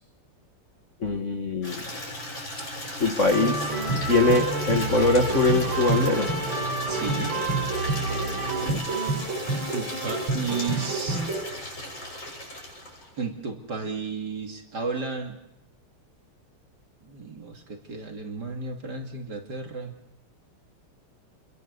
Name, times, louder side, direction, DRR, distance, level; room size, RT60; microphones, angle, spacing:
voice 1, 1.0-1.8 3.0-3.7 4.0-6.3 8.6-8.8, left 3 dB, 40° left, 5 dB, 1.7 m, -23 dB
Water tap faucet / Liquid, 1.6-13.2, left 1 dB, 60° left, 8.1 m, -37 dB
sound 1, 3.2-11.4, right 2 dB, 70° right, 5.7 m, -28 dB
voice 2, 6.9-7.4 9.7-11.2 13.2-15.4 17.0-19.9, right 4 dB, 50° right, 3 dB, 3.0 m, -33 dB
29.5 x 22.5 x 6.8 m, 0.90 s
omnidirectional pair, 2.4 m